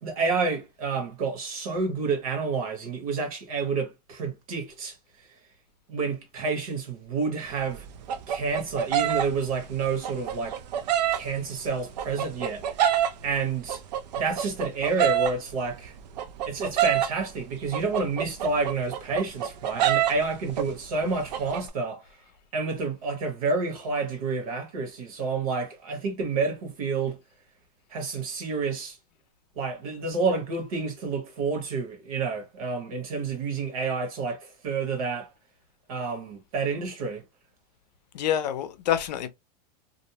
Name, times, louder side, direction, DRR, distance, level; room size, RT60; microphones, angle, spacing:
voice 1, 0.0-5.3 5.9-7.9 8.3-10.6 11.1-12.8 13.2-13.8 14.1-15.9 16.5-22.0 22.5-27.2 27.9-29.0 29.6-35.3 35.9-37.2, right 4 dB, 60° right, 1.1 m, -29 dB
sound 1, 7.5-11.2 11.7-13.4 13.7-17.2 17.7-20.2 20.5-20.8 21.1-21.7, right 10 dB, 85° right, 0.4 m, -26 dB
voice 2, 38.1-39.3, left 10 dB, 90° left, 0.5 m, -27 dB
2.6 x 2.0 x 2.8 m
supercardioid pair, 175°, 21 cm